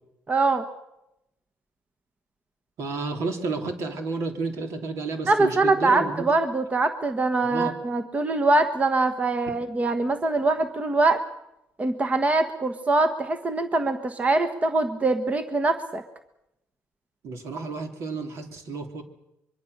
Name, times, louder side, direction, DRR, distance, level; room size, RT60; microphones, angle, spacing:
voice 1, 0.3-0.7 5.3-11.2 11.8-16.0, right 2 dB, 25° right, 8 dB, 1.4 m, -23 dB
voice 2, 2.8-6.3 7.4-7.7 17.2-19.0, right 3 dB, 65° right, 5 dB, 3.2 m, -31 dB
24.5 x 23.0 x 6.7 m, 0.89 s
cardioid pair, 85°, 5 cm